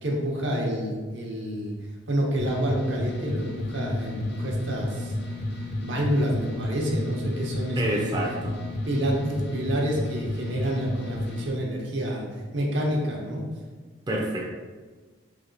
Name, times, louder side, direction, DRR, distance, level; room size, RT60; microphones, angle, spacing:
voice 1, 0.0-1.7 2.1-5.1 5.8-8.2 8.8-12.2 12.5-13.5, equal, 75° right, -1 dB, 0.9 m, -28 dB
sound 1, 2.4-11.5, left 1 dB, 60° left, 0.5 m, -32 dB
voice 2, 7.8-8.6 14.1-14.5, right 1 dB, 20° right, -2 dB, 0.5 m, -28 dB
3.3 x 3.2 x 4.0 m, 1.4 s
head